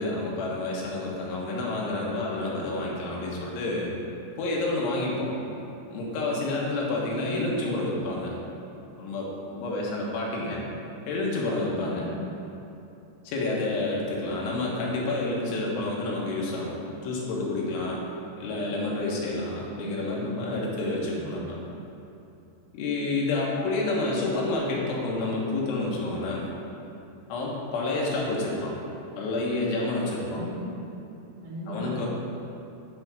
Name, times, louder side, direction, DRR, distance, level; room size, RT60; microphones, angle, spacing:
voice 1, 0.0-3.9 4.4-5.3 5.9-8.4 9.0-10.6 11.1-12.1 13.3-16.8 17.0-18.0 18.4-21.6 22.7-26.5 27.3-28.7 29.2-30.4 31.7-32.1, left 2 dB, 85° left, -4 dB, 3.7 m, -29 dB
voice 2, 21.0-21.3 30.3-30.8 31.4-31.9, equal, 65° right, -6 dB, 3.4 m, -37 dB
10.5 x 3.5 x 6.0 m, 2.9 s
omnidirectional pair, 5.4 m